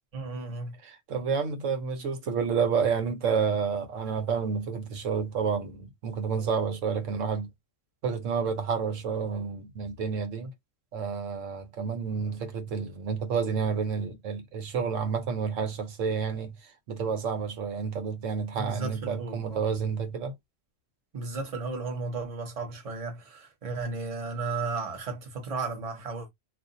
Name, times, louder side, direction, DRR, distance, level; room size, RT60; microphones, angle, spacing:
voice 1, 0.1-0.8 18.5-19.6 21.1-26.3, right 3 dB, 30° right, 0.9 m, -34 dB
voice 2, 0.8-7.5 8.0-10.5 10.9-20.3, right 6 dB, 80° right, 1.2 m, -30 dB
2.6 x 2.6 x 3.8 m
omnidirectional pair, 1.3 m